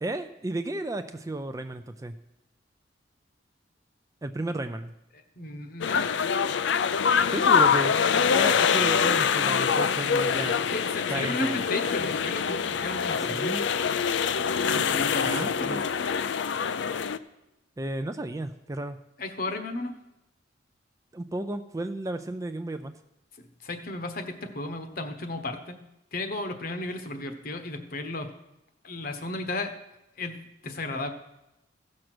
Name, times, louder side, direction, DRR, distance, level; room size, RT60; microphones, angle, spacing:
voice 1, 0.0-2.2 4.2-4.9 7.3-8.0 8.3-10.7 11.1-11.6 13.3-13.7 15.3-15.9 17.8-19.0 21.1-22.9, right 2 dB, 15° right, 9 dB, 0.4 m, -33 dB
voice 2, 5.4-6.2 10.6-13.5 14.7-15.8 19.2-20.0 23.4-25.8 26.1-28.3 28.8-29.7 30.2-31.1, left 2 dB, 50° left, 7 dB, 1.1 m, -34 dB
sound 1, 5.8-17.2, left 6 dB, 75° left, 0.4 m, -25 dB
15.5 x 6.4 x 6.1 m, 0.93 s
head